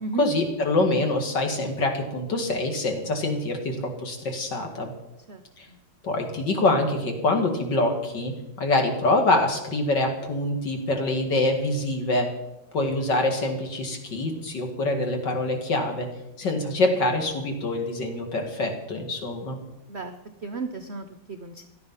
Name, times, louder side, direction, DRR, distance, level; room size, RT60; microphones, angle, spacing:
voice 1, 0.2-4.9 5.6-5.7 6.0-8.3 8.6-12.3 12.7-16.1 16.4-19.6, left 2 dB, 60° left, 3 dB, 2.8 m, -25 dB
voice 2, 20.4-21.7, right 4 dB, 55° right, 8 dB, 0.7 m, -34 dB
17.0 x 12.0 x 5.7 m, 0.93 s
omnidirectional pair, 2.2 m